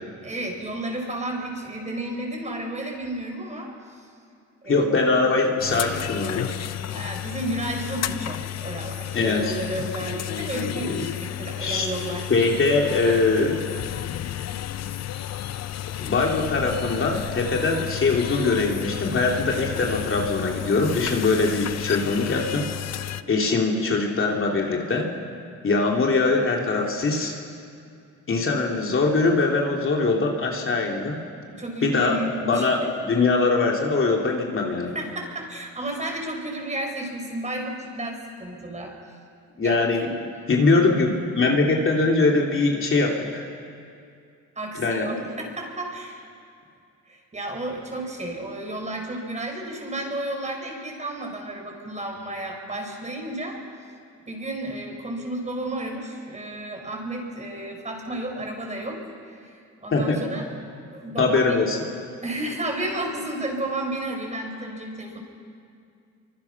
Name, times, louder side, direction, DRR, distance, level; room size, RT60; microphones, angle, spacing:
voice 1, 0.2-4.1 4.6-5.0 6.9-12.3 23.5-23.6 31.5-32.7 34.9-38.9 39.5-40.1 40.7-40.9 44.6-46.2 47.1-53.6 54.3-60.5 60.9-61.6 62.2-65.2, right 1 dB, 25° right, 1 dB, 5.5 m, -32 dB
voice 2, 4.6-6.5 9.1-9.4 10.7-11.1 11.6-11.9 12.3-13.6 16.0-22.7 23.3-25.1 25.6-27.3 28.3-31.2 31.8-34.9 39.6-40.1 40.5-43.5 44.7-45.1 59.9-60.2 61.2-61.8, left 3 dB, 45° left, 0 dB, 3.1 m, -22 dB
sound 1, 5.6-23.2, left 11 dB, 60° left, 0.7 m, -32 dB
26.5 x 25.0 x 6.0 m, 2.4 s
cardioid pair, 90°, 30 cm